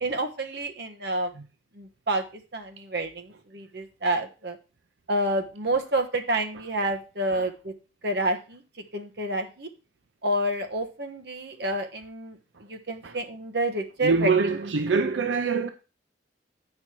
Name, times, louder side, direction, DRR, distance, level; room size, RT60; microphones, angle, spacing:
voice 1, 0.0-1.3 1.7-2.2 2.5-4.6 5.1-7.7 8.0-8.6 8.9-9.7 10.2-12.4 12.7-14.6, right 1 dB, 65° right, 1.3 m, -29 dB
voice 2, 14.0-15.7, right 4 dB, 90° right, 0.6 m, -24 dB
8.7 x 5.7 x 4.5 m
head